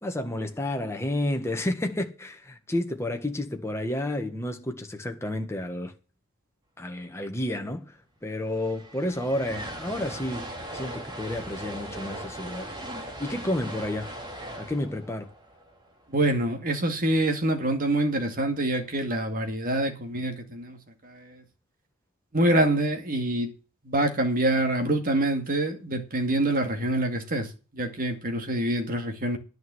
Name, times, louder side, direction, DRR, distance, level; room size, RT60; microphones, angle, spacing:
voice 1, 0.0-5.9 6.8-7.9 8.2-12.7 13.2-14.1 14.6-15.3, left 1 dB, 10° left, 1.6 m, -31 dB
sound 1, 8.0-8.1 8.3-16.5, right 1 dB, 20° right, 2.6 m, -39 dB
voice 2, 16.1-20.8 22.3-23.5 23.9-27.5 27.7-29.4, right 1 dB, 40° right, 2.4 m, -25 dB
10.5 x 6.5 x 7.9 m
head